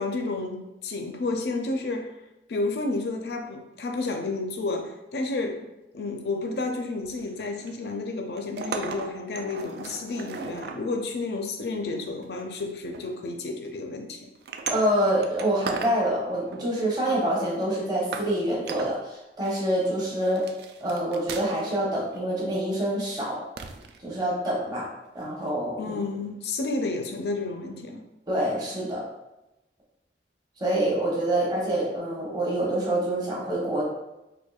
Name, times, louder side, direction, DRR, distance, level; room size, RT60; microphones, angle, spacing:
voice 1, 0.0-2.1 2.5-5.6 5.9-14.3 25.8-28.0, left 3 dB, 65° left, 4 dB, 0.4 m, -31 dB
sound 1, 7.0-7.9 8.4-10.8 11.8-12.4 12.9-13.2 13.6-13.8 14.4-16.0 16.3-17.1 17.6-17.7 18.1-18.3 18.7-19.0 19.4-19.9 20.2-21.7 22.0-22.2 23.6-24.0 25.5-25.6, right 4 dB, 65° right, 0.3 m, -37 dB
voice 2, 14.7-20.4 20.8-23.4 24.0-24.9 25.1-26.0 28.3-29.0 30.6-33.9, right 1 dB, 25° right, -5 dB, 0.8 m, -26 dB
4.3 x 2.6 x 2.3 m, 0.96 s
head